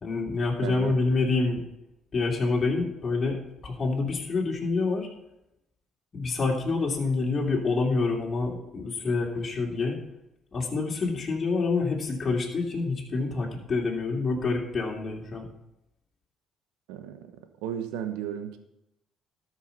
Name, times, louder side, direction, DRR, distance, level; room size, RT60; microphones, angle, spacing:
voice 1, 0.0-1.6 2.1-5.1 6.1-10.0 10.5-15.5, left 3 dB, 40° left, -2 dB, 2.9 m, -27 dB
voice 2, 0.6-1.0 16.9-17.2 17.6-18.6, right 9 dB, 85° right, 8 dB, 1.1 m, -34 dB
13.0 x 6.3 x 5.5 m, 0.86 s
supercardioid pair, 65°, 0 cm